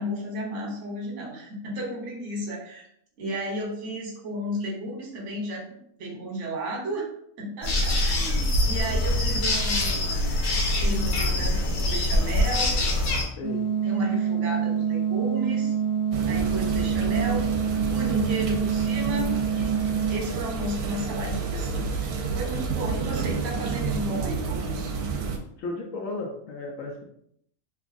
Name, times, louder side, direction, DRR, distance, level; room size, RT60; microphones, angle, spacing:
voice 1, 0.0-2.9 3.2-5.6 6.0-7.1 7.4-10.3 10.7-12.7 13.1-13.2 13.8-15.7 16.3-17.5 17.9-19.8 20.1-24.9, equal, 55° right, -1 dB, 1.2 m, -33 dB
sound 1, 7.6-13.2, left 1 dB, 85° left, 1.3 m, -24 dB
voice 2, 13.3-13.7 25.6-27.0, left 3 dB, 70° left, 0 dB, 0.9 m, -34 dB
sound 2, 13.4-20.2, right 8 dB, 20° right, 0.6 m, -26 dB
sound 3, 16.1-25.4, right 4 dB, 75° right, 1.0 m, -30 dB
3.4 x 3.0 x 2.5 m, 0.69 s
omnidirectional pair, 1.6 m